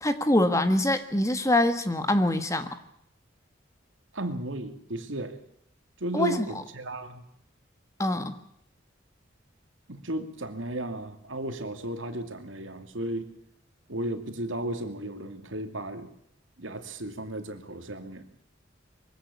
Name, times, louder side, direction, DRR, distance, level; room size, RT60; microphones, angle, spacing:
voice 1, 0.0-2.7 6.1-6.4 8.0-8.3, left 1 dB, 15° left, 9 dB, 1.6 m, -24 dB
voice 2, 4.1-5.4 6.0-7.2 9.9-13.3 13.9-16.1 16.6-18.3, right 1 dB, 85° right, 7 dB, 2.6 m, -34 dB
23.0 x 16.5 x 8.5 m, 0.75 s
head